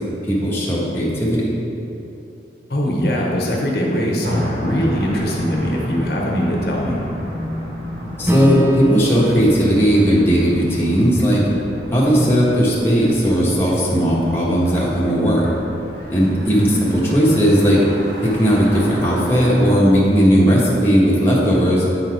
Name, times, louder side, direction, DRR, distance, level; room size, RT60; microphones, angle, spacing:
voice 1, 0.3-1.5 8.2-11.4 11.9-15.5 16.1-17.8 18.2-21.8, equal, 15° left, -7 dB, 1.2 m, -16 dB
voice 2, 2.7-7.0 16.5-16.7, equal, 65° left, -2 dB, 1.0 m, -21 dB
sound 1, 4.2-19.8, equal, 55° right, 1.4 m, -31 dB
Acoustic guitar / Strum, 8.3-13.0, left 1 dB, 10° right, 0.3 m, -28 dB
8.5 x 4.1 x 4.7 m, 2.9 s
head